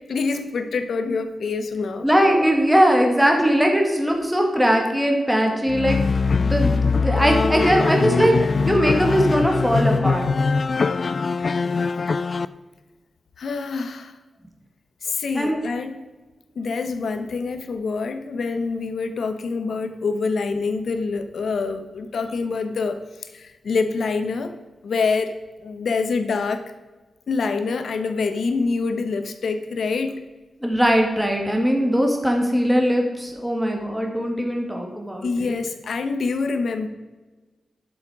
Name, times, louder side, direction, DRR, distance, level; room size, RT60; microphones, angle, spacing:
voice 1, 0.1-2.1 13.4-14.1 15.0-16.0 16.5-24.5 24.8-25.4 25.6-26.6 27.3-30.3 35.2-36.9, left 4 dB, 65° left, 8 dB, 1.1 m, -26 dB
voice 2, 2.0-6.0 6.4-10.3 15.4-15.6 30.6-35.6, equal, ahead, 1 dB, 1.8 m, -20 dB
sound 1, 5.7-12.5, left 4 dB, 40° left, 0.3 m, -22 dB
11.5 x 7.5 x 4.8 m, 1.2 s
wide cardioid pair, 165°, 0 cm